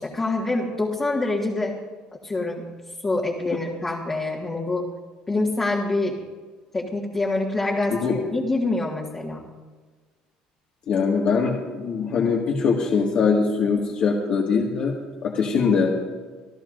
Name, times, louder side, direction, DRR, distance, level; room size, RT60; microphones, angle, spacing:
voice 1, 0.0-1.8 2.2-2.7 3.0-4.9 5.3-6.2 6.7-8.0 8.3-9.5, left 2 dB, 20° left, -3 dB, 1.7 m, -25 dB
voice 2, 10.9-14.9 15.2-15.9, left 5 dB, 50° left, -2 dB, 1.8 m, -22 dB
26.5 x 13.5 x 2.6 m, 1.4 s
cardioid pair, 140°, 2 cm